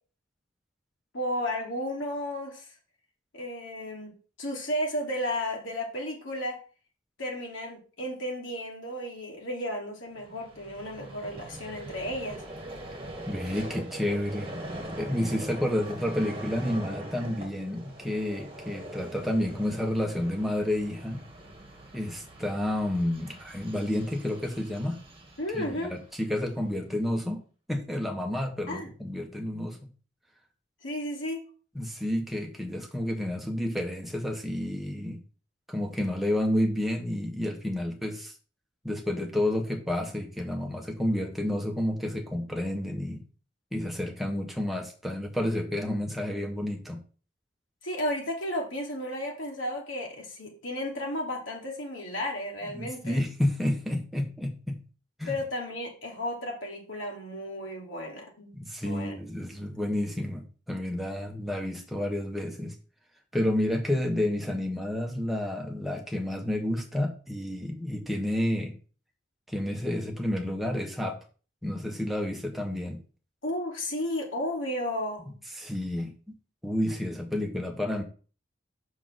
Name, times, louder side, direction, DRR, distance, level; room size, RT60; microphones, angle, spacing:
voice 1, 1.1-2.7 3.3-4.1 4.4-6.6 7.2-12.4 25.4-25.9 28.7-28.9 30.8-31.4 47.8-53.2 55.3-58.5 58.8-59.2 73.4-75.3, left 1 dB, 80° left, -1 dB, 2.8 m, -33 dB
Vehicle, 10.2-26.5, right 1 dB, 25° right, 1.8 m, -42 dB
voice 2, 13.3-14.5 15.0-21.2 21.9-25.0 25.5-27.4 27.7-29.8 31.7-35.2 35.7-38.3 38.8-43.2 43.7-47.0 52.7-54.8 55.2-55.4 58.5-62.7 63.3-68.7 69.5-71.2 71.6-73.0 75.5-76.1 76.6-78.0, left 1 dB, ahead, 1 dB, 1.3 m, -30 dB
6.2 x 4.9 x 6.2 m, 0.38 s
head